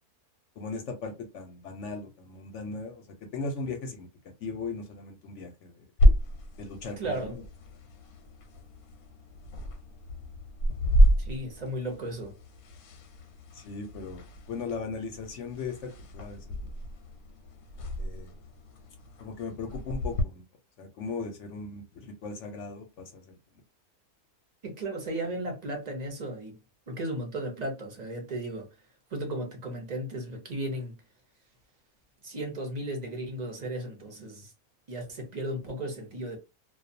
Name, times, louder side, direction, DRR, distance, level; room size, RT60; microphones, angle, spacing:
voice 1, 0.6-3.0 3.3-4.1 4.4-5.8 6.6-7.4 13.6-14.2 14.5-16.5 18.0-18.4 19.2-20.4 20.8-23.2, left 4 dB, 65° left, 0.8 m, -38 dB
sound 1, 6.0-20.2, equal, 90° left, 1.1 m, -29 dB
voice 2, 7.0-7.4 11.2-12.3 24.6-26.6 26.9-28.7 29.1-30.9 32.2-34.5 34.9-36.4, right 1 dB, 45° right, 0.5 m, -35 dB
2.3 x 2.2 x 2.6 m
omnidirectional pair, 1.5 m